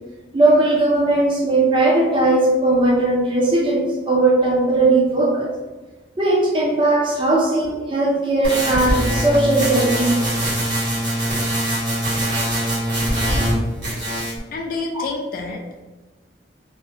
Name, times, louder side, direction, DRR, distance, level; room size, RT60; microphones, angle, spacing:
voice 1, 0.3-5.5 6.2-10.4 14.9-15.0, right 2 dB, 30° right, -1 dB, 0.4 m, -18 dB
sound 1, 8.4-13.6 13.8-14.4, right 1 dB, 75° right, 1.1 m, -22 dB
voice 2, 14.5-15.8, left 3 dB, 50° left, 2 dB, 0.3 m, -28 dB
2.5 x 2.1 x 2.5 m, 1.2 s
head